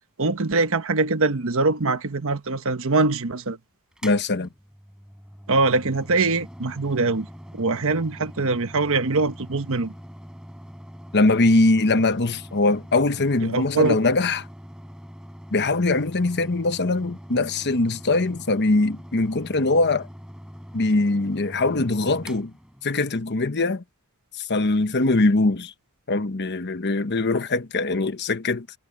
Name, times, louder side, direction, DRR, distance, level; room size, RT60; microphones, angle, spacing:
voice 1, 0.2-3.6 5.5-7.3 7.5-9.9 13.4-14.0, right 3 dB, 65° right, 1.2 m, -23 dB
Mechanical fan, 3.9-23.3, equal, 5° right, 5.4 m, -43 dB
voice 2, 4.0-4.5 11.1-14.4 15.5-20.1 20.7-22.5 22.8-23.8 24.4-25.7 26.1-28.7, left 2 dB, 50° left, 1.1 m, -22 dB
head